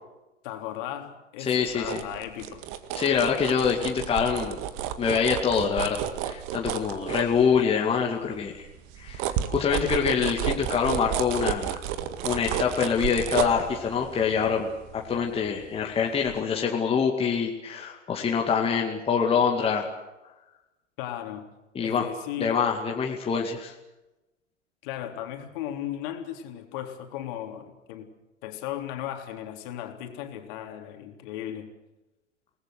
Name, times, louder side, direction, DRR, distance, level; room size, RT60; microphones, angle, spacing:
voice 1, 0.4-2.6 21.0-21.5 21.8-22.6 24.8-28.1 28.4-31.7, left 11 dB, 40° left, 4 dB, 3.7 m, -36 dB
voice 2, 1.4-2.0 2.9-4.6 5.0-8.7 9.0-11.8 12.2-14.7 14.9-19.9 21.7-22.1 22.4-23.7, left 6 dB, 15° left, 1 dB, 2.3 m, -25 dB
sound 1, 1.6-7.9 8.3-15.9 16.2-16.4, right 10 dB, 35° right, 2.0 m, -32 dB
30.0 x 19.5 x 6.6 m, 1.0 s
figure-of-eight pair, 100°, 37 cm